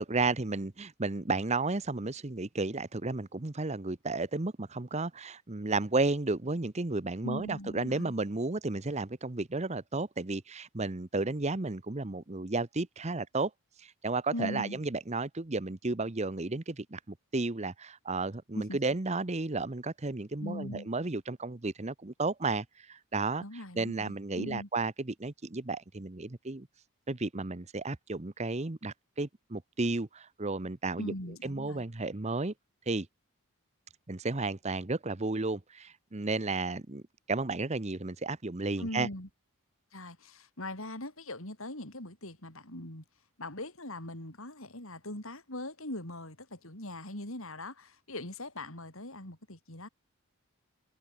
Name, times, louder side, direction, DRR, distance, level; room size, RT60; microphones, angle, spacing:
voice 1, 0.0-13.5 13.8-23.4 23.8-26.7 27.1-31.1 31.4-32.5 32.9-33.1 34.1-37.0 37.3-39.1, right 3 dB, 30° right, 0.9 m, -33 dB
voice 2, 7.2-8.1 14.3-14.8 18.5-18.8 20.4-20.9 23.4-24.7 31.0-31.8 38.8-39.3 39.9-43.0 43.4-49.9, left 1 dB, 65° left, 6.4 m, -40 dB
head